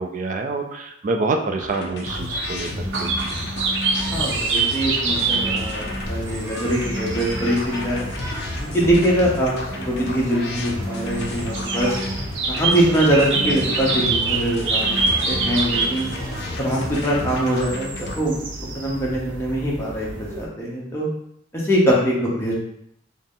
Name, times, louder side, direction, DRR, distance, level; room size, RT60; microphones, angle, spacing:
voice 1, 0.0-2.7 3.0-3.3, right 3 dB, 40° right, 3 dB, 0.3 m, -26 dB
sound 1, 1.6-18.2, left 1 dB, 60° left, 0.5 m, -32 dB
sound 2, 2.0-20.4, right 4 dB, 75° right, 0.7 m, -27 dB
sound 3, 3.9-17.7, equal, 15° right, 0.7 m, -37 dB
voice 2, 4.1-8.1 8.6-12.0 12.5-15.0 15.3-16.1 16.6-18.4 18.7-21.1 21.5-22.5, right 1 dB, 15° left, -5 dB, 0.8 m, -22 dB
3.9 x 2.0 x 3.7 m, 0.75 s
head